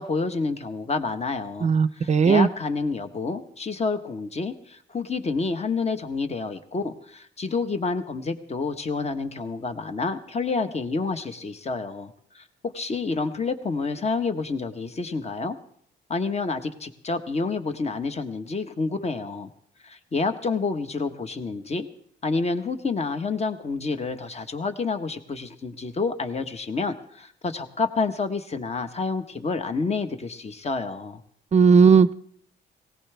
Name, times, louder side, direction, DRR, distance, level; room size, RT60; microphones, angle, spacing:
voice 1, 0.0-15.6 16.1-19.5 19.8-21.9 22.2-31.2, left 4 dB, 30° left, 8 dB, 1.3 m, -29 dB
voice 2, 1.6-2.5 31.5-32.1, right 5 dB, 35° right, 16 dB, 0.6 m, -16 dB
18.5 x 17.5 x 3.5 m, 0.65 s
cardioid pair, 90°, 20 cm